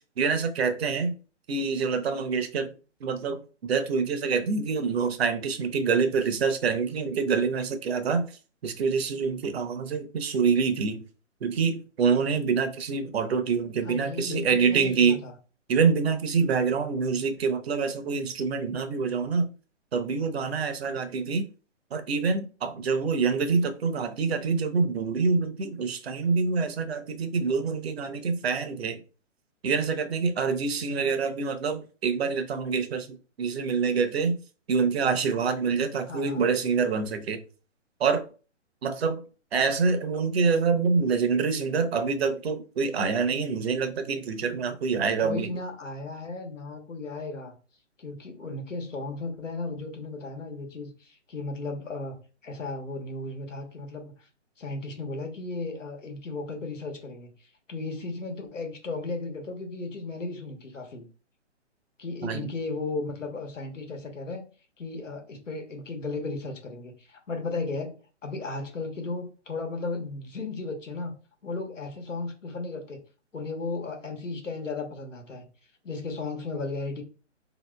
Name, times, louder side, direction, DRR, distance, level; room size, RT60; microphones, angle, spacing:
voice 1, 0.2-1.1 1.5-2.7 3.0-8.3 8.6-11.0 11.4-15.2 15.7-19.5 19.9-21.5 21.9-29.0 29.6-33.1 33.4-34.4 34.7-37.4 38.0-38.2 38.8-39.2 39.5-45.5 62.2-62.5, right 5 dB, 55° right, 0.7 m, -26 dB
voice 2, 13.8-15.3 36.1-36.4 45.2-47.5 48.0-52.1 52.4-54.3 54.6-61.0 62.0-64.4 64.8-71.1 71.4-73.0 73.3-75.5 75.8-77.0, left 3 dB, 90° left, 1.1 m, -35 dB
3.9 x 2.8 x 2.2 m
hypercardioid pair, 140°, 37 cm